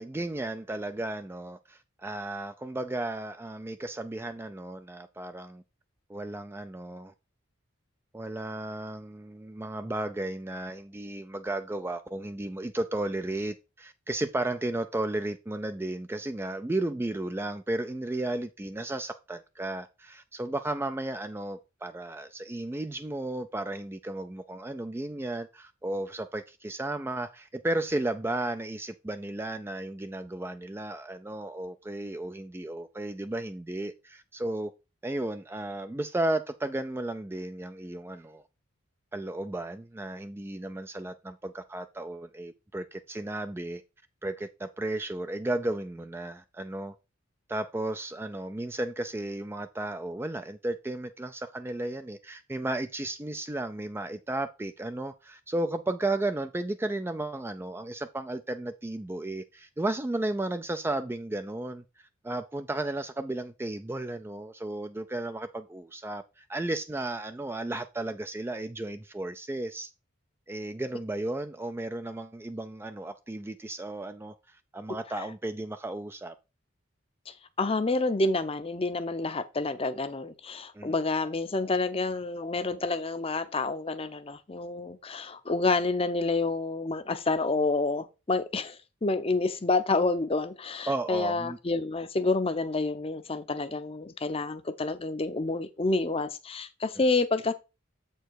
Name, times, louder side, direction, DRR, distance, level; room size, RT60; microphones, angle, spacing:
voice 1, 0.0-5.6 6.1-7.1 8.1-34.7 35.0-38.4 39.1-43.8 44.2-47.0 47.5-61.8 62.2-69.9 70.5-76.3 80.7-80.9 90.9-91.6, right 2 dB, 10° right, 0.3 m, -34 dB
voice 2, 77.3-97.5, left 3 dB, 25° left, 0.6 m, -29 dB
7.7 x 4.5 x 4.6 m
head